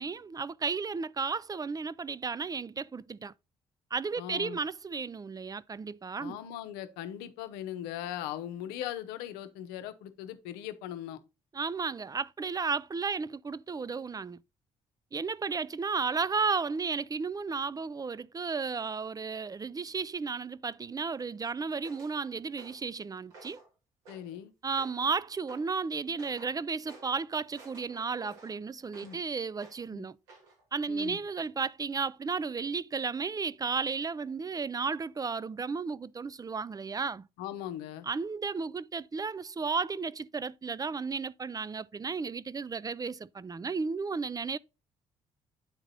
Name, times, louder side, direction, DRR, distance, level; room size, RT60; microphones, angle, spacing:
voice 1, 0.0-3.3 3.9-6.4 11.5-14.4 15.1-23.6 24.6-30.2 30.7-37.3 38.1-44.6, right 5 dB, 25° right, 0.4 m, -33 dB
voice 2, 4.2-4.6 6.2-11.2 24.1-24.5 29.0-29.2 29.9-30.1 30.9-31.2 37.4-38.1, left 11 dB, 80° left, 0.7 m, -39 dB
sound 1, 21.8-22.2 22.6-22.9 23.3-23.7 24.1-24.4 24.8-25.1 25.5-25.7 26.2-26.6 26.9-27.2 27.5-29.2 29.6-29.9 30.3-30.6 31.0-31.2, right 3 dB, 85° right, 2.2 m, -53 dB
9.5 x 3.9 x 3.9 m
hypercardioid pair, 50°, 16 cm